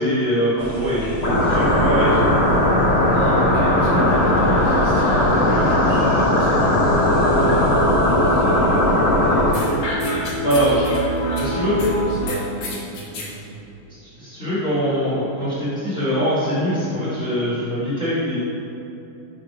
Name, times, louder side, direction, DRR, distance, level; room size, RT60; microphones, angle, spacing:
voice 1, 0.0-2.2 3.9-4.1 10.4-10.8 11.3-11.8 14.2-18.4, equal, 90° left, -12 dB, 0.7 m, -22 dB
voice 2, 0.6-1.3 3.0-8.9 9.2-10.3 11.3-13.5, right 1 dB, 45° right, -12 dB, 1.2 m, -32 dB
sound 1, 0.6-12.3, right 1 dB, 70° right, 1.7 m, -28 dB
sound 2, 1.2-9.5, left 1 dB, 45° left, 1.3 m, -18 dB
sound 3, 9.5-11.9 12.3-13.3, left 2 dB, 65° left, 1.8 m, -31 dB
6.4 x 3.2 x 5.1 m, 3.0 s
omnidirectional pair, 4.0 m